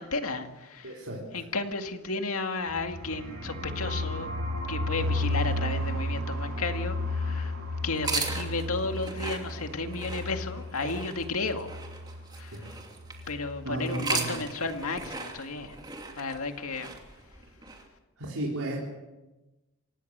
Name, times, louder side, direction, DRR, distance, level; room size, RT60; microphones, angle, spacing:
voice 1, 0.0-1.0 1.3-4.3 4.7-7.6 7.8-11.8 12.4-12.8 13.3-15.8 16.2-17.0, left 3 dB, 80° left, 6 dB, 2.0 m, -33 dB
voice 2, 0.8-1.2 12.5-12.7 13.6-14.4 18.2-18.8, right 1 dB, 90° right, -4 dB, 4.3 m, -34 dB
sound 1, 2.7-12.4 12.7-12.8 13.1-13.6, left 1 dB, 70° right, 3.1 m, -33 dB
sound 2, 7.9-13.3 13.8-17.8, right 4 dB, 20° right, 2.8 m, -37 dB
28.0 x 16.5 x 6.8 m, 1.1 s
head